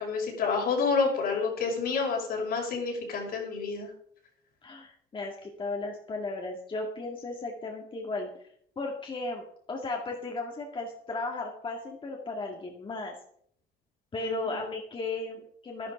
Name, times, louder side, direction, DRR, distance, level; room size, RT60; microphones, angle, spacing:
voice 1, 0.0-3.9 14.2-14.6, left 4 dB, 65° left, 1 dB, 5.3 m, -29 dB
voice 2, 4.6-8.3 8.8-13.1 14.1-15.9, left 2 dB, 30° left, 1 dB, 2.2 m, -35 dB
11.5 x 11.5 x 5.2 m, 0.65 s
cardioid pair, 110°, 17 cm